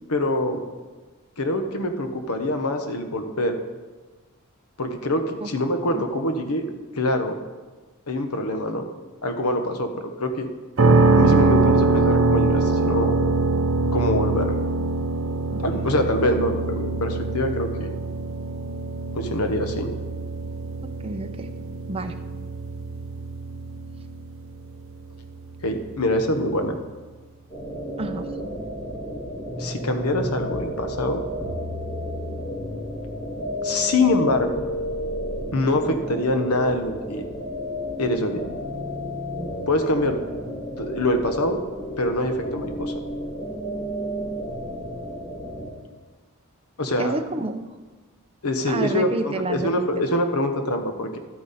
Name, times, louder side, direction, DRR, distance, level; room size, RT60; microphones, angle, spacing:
voice 1, 0.1-0.6 1.4-3.6 4.8-6.7 6.9-7.4 8.1-8.8 9.2-10.5 11.1-13.2 13.9-14.6 15.6-17.9 19.1-19.9 25.6-26.8 29.6-31.2 33.6-34.5 35.5-37.2 38.0-38.4 39.7-40.2 40.8-41.6 42.0-42.9 46.8-47.2 48.4-51.2, left 1 dB, 85° left, 6 dB, 1.1 m, -24 dB
sound 1, 10.8-26.6, right 3 dB, 60° right, 0.8 m, -24 dB
voice 2, 15.5-15.9 20.8-21.5 21.9-22.1 28.0-28.3 47.0-47.8 48.6-50.1, right 2 dB, 25° right, 6 dB, 0.7 m, -30 dB
sound 2, 27.5-45.7, equal, 15° left, 3.4 m, -32 dB
12.5 x 8.8 x 4.2 m, 1.3 s
head